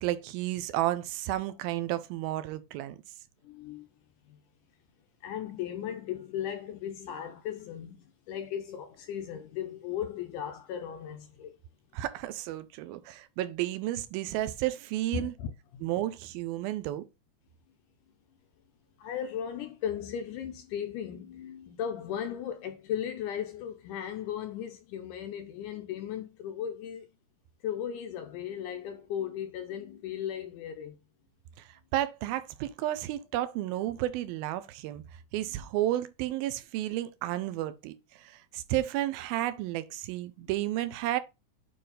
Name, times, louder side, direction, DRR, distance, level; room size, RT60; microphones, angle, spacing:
voice 1, 0.0-3.0 11.9-15.3 15.8-17.0 31.6-35.0 35.3-41.2, right 14 dB, 85° right, 2.5 m, -32 dB
voice 2, 3.4-3.9 4.3-4.4 5.2-11.6 15.1-15.9 19.0-27.1 27.6-31.0 35.4-35.7, left 9 dB, 80° left, 2.0 m, -37 dB
9.0 x 3.3 x 3.9 m
omnidirectional pair, 4.2 m